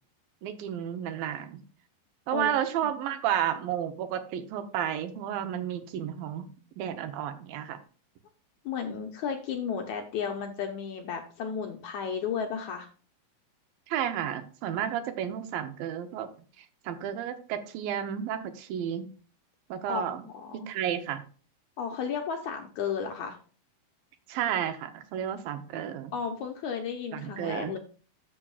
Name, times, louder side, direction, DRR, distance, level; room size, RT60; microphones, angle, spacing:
voice 1, 0.4-1.6 2.3-6.4 6.8-7.8 13.9-16.3 16.6-19.1 19.7-20.2 20.5-21.2 24.3-26.1 27.1-27.8, right 10 dB, 80° right, 9 dB, 2.5 m, -32 dB
voice 2, 8.7-12.9 19.9-20.7 21.8-23.4 26.1-27.8, left 6 dB, 75° left, 3 dB, 1.8 m, -33 dB
13.5 x 6.2 x 2.3 m, 0.40 s
omnidirectional pair, 4.1 m